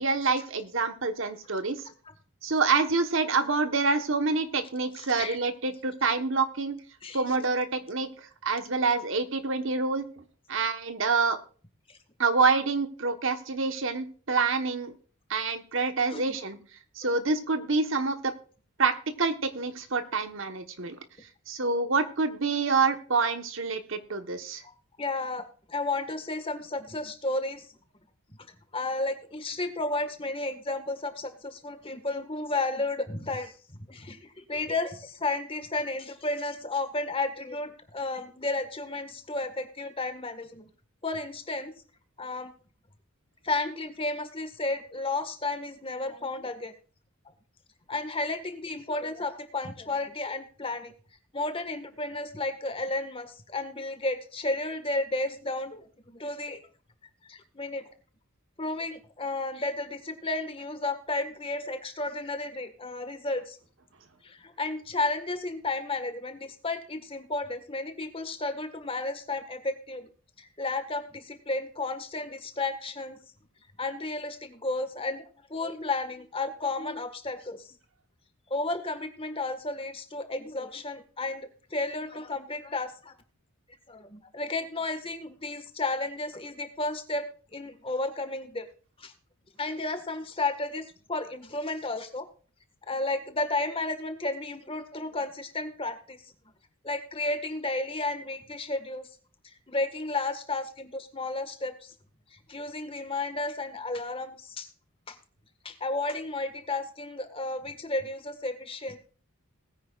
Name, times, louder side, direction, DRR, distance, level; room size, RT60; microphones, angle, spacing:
voice 1, 0.0-1.8 2.4-6.8 7.1-8.1 8.4-10.2 10.5-11.4 12.2-14.9 15.3-16.6 17.0-18.3 18.8-21.0 21.5-24.6, right 4 dB, 60° right, 8 dB, 1.2 m, -27 dB
voice 2, 25.0-25.4 25.7-27.7 28.7-40.7 41.0-41.7 42.2-42.5 43.4-46.7 47.9-50.9 51.3-56.6 57.3-57.9 58.6-63.6 64.2-70.1 70.4-73.2 73.8-77.7 78.5-83.1 83.9-88.6 89.0-89.1 89.6-92.3 92.9-96.2 96.8-99.1 99.7-101.9 102.3-104.7 105.1-105.2 105.6-109.0, left 2 dB, 25° left, 8 dB, 1.6 m, -32 dB
20.5 x 9.4 x 2.4 m, 0.41 s
head